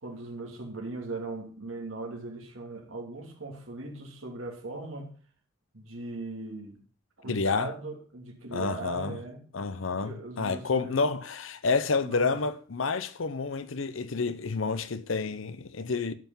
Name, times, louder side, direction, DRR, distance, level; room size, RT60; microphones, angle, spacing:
voice 1, 0.0-5.1 5.7-6.8 7.2-9.5 10.0-11.1 12.0-12.4, right 2 dB, 90° right, 2.8 m, -39 dB
voice 2, 7.3-7.7 8.5-9.2 9.5-16.1, left 4 dB, 85° left, 0.7 m, -29 dB
12.0 x 5.8 x 5.5 m
head